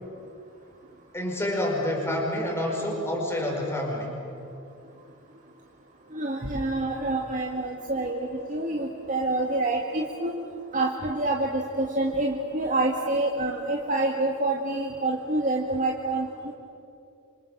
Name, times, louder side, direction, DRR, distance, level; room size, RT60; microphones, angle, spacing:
voice 1, 1.1-4.1, left 1 dB, 10° left, -1 dB, 5.3 m, -28 dB
voice 2, 6.1-10.3 10.7-16.5, right 2 dB, 40° right, 0 dB, 1.9 m, -27 dB
27.5 x 26.0 x 7.4 m, 2.6 s
head